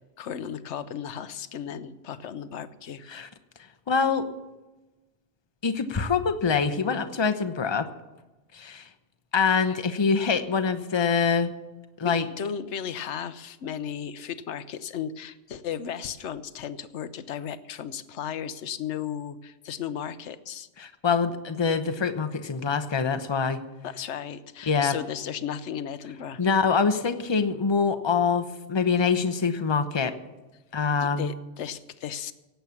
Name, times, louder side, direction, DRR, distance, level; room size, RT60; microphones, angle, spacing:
voice 1, 0.2-3.0 9.6-9.8 12.0-20.7 23.8-26.5 31.2-32.3, left 8 dB, 75° left, 13 dB, 1.0 m, -35 dB
voice 2, 3.9-4.3 5.6-7.9 8.5-8.9 9.3-11.5 12.0-12.3 20.8-23.6 24.7-25.0 26.4-30.2 30.7-31.3, left 5 dB, 25° left, 9 dB, 0.8 m, -25 dB
17.5 x 8.1 x 7.1 m, 1.1 s
omnidirectional pair, 1.2 m